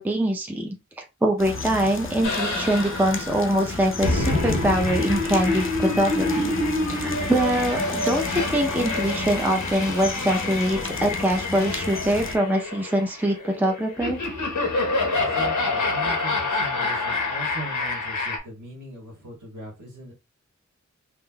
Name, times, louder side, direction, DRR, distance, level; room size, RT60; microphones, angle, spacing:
voice 1, 0.0-6.5 6.9-14.2, right 1 dB, 5° right, 2 dB, 0.5 m, -24 dB
sound 1, 1.4-12.4, left 3 dB, 45° left, 0.6 m, -33 dB
sound 2, 2.2-18.4, left 2 dB, 80° left, 1.0 m, -27 dB
voice 2, 15.1-20.1, right 2 dB, 85° right, -2 dB, 1.8 m, -39 dB
3.7 x 2.5 x 2.2 m, 0.26 s
wide cardioid pair, 55°, 29 cm